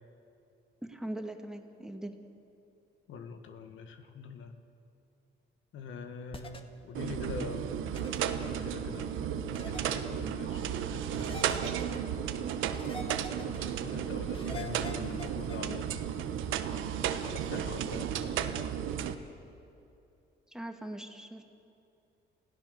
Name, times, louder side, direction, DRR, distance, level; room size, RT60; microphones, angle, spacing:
voice 1, 0.8-2.1 20.5-21.4, right 1 dB, 5° right, 4 dB, 2.2 m, -40 dB
voice 2, 3.1-4.6 5.7-9.2 9.6-11.9 13.2-16.3 17.2-18.7, left 4 dB, 80° left, 6 dB, 1.8 m, -44 dB
sound 1, 6.3-6.6 7.9-8.2 9.5-9.8 11.1-12.0 12.7-13.6 14.3-15.6, left 2 dB, 25° left, 2.0 m, -44 dB
sound 2, 6.9-19.1, right 9 dB, 90° right, 1.1 m, -34 dB
28.0 x 16.5 x 6.8 m, 2.7 s
cardioid pair, 90°, 20 cm